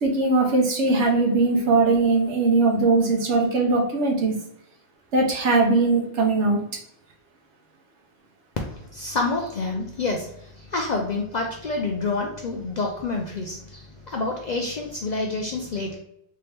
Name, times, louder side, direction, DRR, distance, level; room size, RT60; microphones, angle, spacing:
voice 1, 0.0-4.3 5.1-6.6, right 3 dB, 65° right, 1 dB, 1.1 m, -20 dB
voice 2, 8.7-15.9, left 3 dB, 75° left, 0 dB, 0.4 m, -28 dB
3.5 x 2.9 x 3.4 m, 0.73 s
omnidirectional pair, 1.4 m